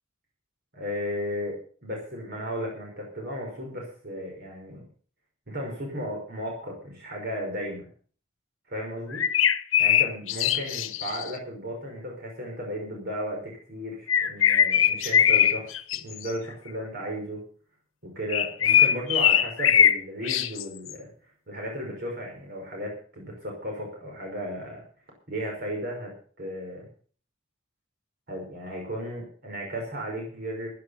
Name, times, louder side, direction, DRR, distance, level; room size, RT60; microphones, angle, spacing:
voice 1, 0.7-4.8 5.5-7.9 8.7-9.2 9.8-15.7 16.0-17.4 18.0-21.1 21.5-24.8 25.3-26.9 28.3-30.7, equal, 50° right, 0 dB, 5.5 m, -35 dB
sound 1, 9.1-11.3 14.1-16.5 18.3-20.0 20.2-20.9, left 9 dB, 75° left, 1.3 m, -21 dB
15.5 x 10.5 x 5.7 m, 0.44 s
head